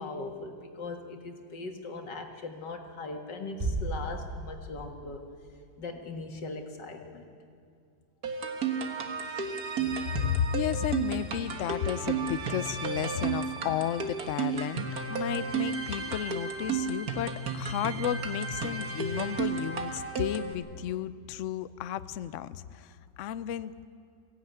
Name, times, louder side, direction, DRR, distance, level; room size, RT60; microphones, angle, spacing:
voice 1, 0.0-5.2 5.8-7.2, left 3 dB, 60° left, 4 dB, 2.4 m, -39 dB
Bass drum, 3.6-5.0, right 2 dB, 25° right, 2.3 m, -34 dB
sound 1, 8.2-20.5, right 5 dB, 50° right, 1.8 m, -33 dB
voice 2, 10.0-23.9, left 10 dB, 90° left, 14 dB, 0.6 m, -33 dB
22.5 x 17.0 x 9.3 m, 2.3 s
omnidirectional pair, 2.1 m